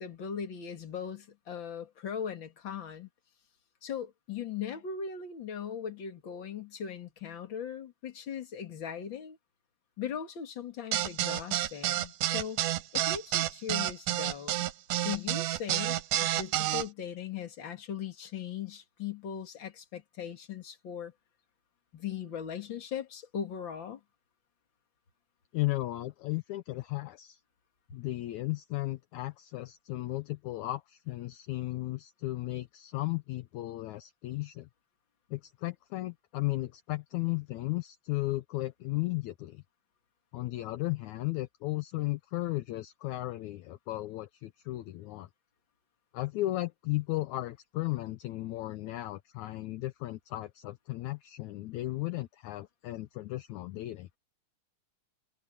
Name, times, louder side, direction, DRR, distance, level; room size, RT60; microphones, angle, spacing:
voice 1, 0.0-3.1 3.8-9.4 10.0-12.6 12.9-14.7 15.0-21.1 21.9-24.0, left 8 dB, 40° left, 2.6 m, -39 dB
sound 1, 10.9-16.8, right 13 dB, 85° right, 2.5 m, -29 dB
voice 2, 25.5-27.4 27.9-34.7 35.3-39.6 40.3-45.3 46.1-54.1, left 18 dB, 75° left, 2.1 m, -35 dB
omnidirectional pair, 3.6 m